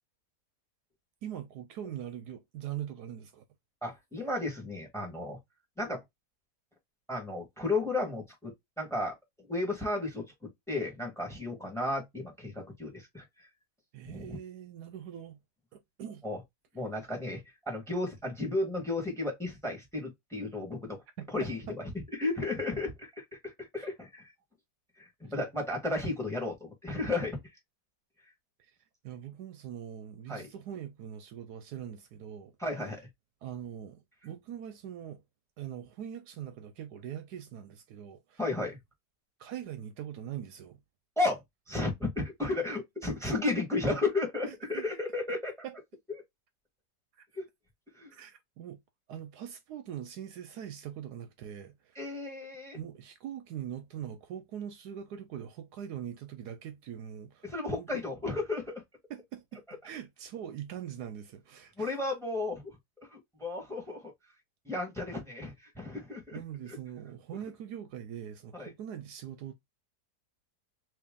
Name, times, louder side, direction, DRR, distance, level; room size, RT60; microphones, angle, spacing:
voice 1, 1.2-3.4 13.9-15.4 15.7-16.2 21.2-21.7 23.8-23.9 28.6-28.7 29.0-32.5 33.4-35.2 35.6-38.4 39.4-40.8 44.5-44.8 45.6-45.8 48.1-48.8 49.1-52.0 52.7-57.5 57.7-57.9 59.1-61.9 66.3-69.5, right 10 dB, 75° right, 1.1 m, -42 dB
voice 2, 3.8-5.4 5.8-6.0 7.1-9.1 9.5-13.2 14.0-14.4 16.2-16.4 16.7-21.0 21.3-24.3 25.0-27.4 30.3-30.5 32.6-33.0 38.4-38.8 41.2-41.4 41.7-45.5 47.3-47.4 47.9-48.1 51.9-52.8 57.4-58.7 61.8-62.6 63.0-64.1 64.6-66.4 68.5-68.7, left 2 dB, ahead, 1.3 m, -33 dB
3.0 x 2.7 x 3.6 m
omnidirectional pair, 1.8 m